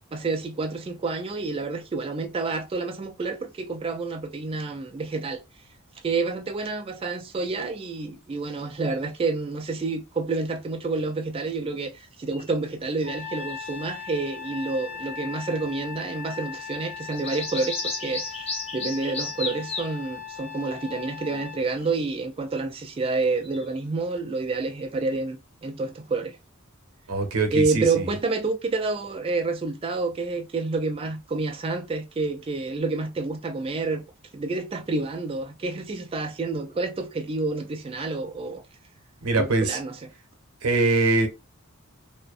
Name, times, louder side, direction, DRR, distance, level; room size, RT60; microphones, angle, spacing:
voice 1, 0.1-5.4 6.0-26.4 27.5-34.0 34.3-38.6 39.3-40.0, right 3 dB, 25° right, 0.3 m, -29 dB
sound 1, 8.6-8.9 12.3-12.6 13.2-13.8 16.7-19.9 21.7-22.0 23.3-23.7, left 3 dB, 30° left, 0.6 m, -34 dB
Trumpet, 13.0-21.6, left 7 dB, 10° right, 0.8 m, -39 dB
voice 2, 27.1-28.1 39.2-39.8 40.6-41.3, right 3 dB, 85° right, 0.7 m, -23 dB
2.5 x 2.1 x 2.4 m
head